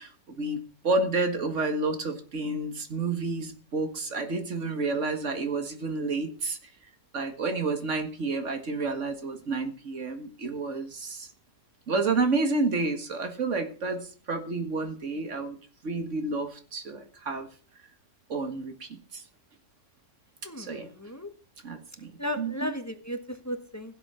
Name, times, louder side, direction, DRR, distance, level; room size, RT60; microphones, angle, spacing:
voice 1, 0.0-6.6 7.1-11.3 11.9-15.6 15.8-17.5 18.3-19.2 20.6-20.9 21.6-22.7, right 3 dB, 80° right, 7 dB, 2.1 m, -30 dB
voice 2, 20.4-21.3 22.2-23.9, left 1 dB, 15° left, 7 dB, 1.3 m, -35 dB
16.0 x 8.2 x 5.6 m, 0.40 s
omnidirectional pair, 1.2 m